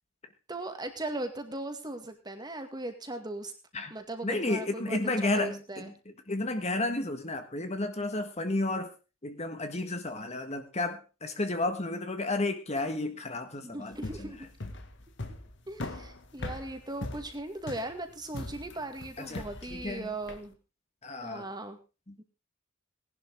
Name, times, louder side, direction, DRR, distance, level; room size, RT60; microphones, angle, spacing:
voice 1, 0.5-3.5 3.9-5.9 13.6-14.5 15.7-20.6 21.2-21.8 22.2-22.3, right 2 dB, 20° right, 6 dB, 2.2 m, -38 dB
voice 2, 4.2-8.9 9.2-14.3 19.2-20.1 21.0-21.5 22.1-22.2, left 2 dB, 30° left, 7 dB, 1.6 m, -32 dB
sound 1, 13.9-20.5, left 1 dB, 55° left, 1.9 m, -40 dB
19.0 x 11.5 x 3.7 m, 0.30 s
head